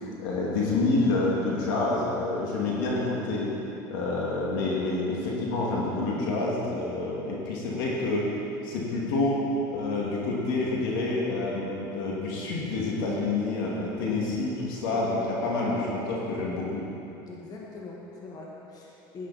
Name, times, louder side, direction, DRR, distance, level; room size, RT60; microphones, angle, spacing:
voice 1, 0.0-3.5 3.9-8.3 8.6-9.4 9.7-16.9, left 2 dB, 80° left, -4 dB, 2.4 m, -28 dB
voice 2, 17.3-19.3, left 3 dB, 35° left, -3 dB, 1.9 m, -42 dB
11.0 x 9.9 x 4.3 m, 2.9 s
supercardioid pair, 110°, 11 cm